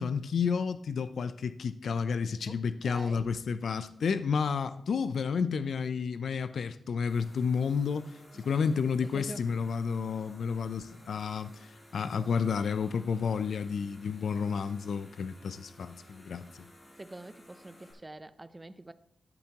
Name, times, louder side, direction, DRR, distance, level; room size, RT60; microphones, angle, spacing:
voice 1, 0.0-8.1 8.4-16.4, left 6 dB, 80° left, 0.5 m, -31 dB
voice 2, 2.5-3.3 8.3-8.6 9.1-9.5 16.9-18.9, right 2 dB, 20° right, 0.5 m, -46 dB
sound 1, 7.1-17.9, equal, 25° left, 5.4 m, -56 dB
13.0 x 10.5 x 3.0 m
wide cardioid pair, 140°, 0 cm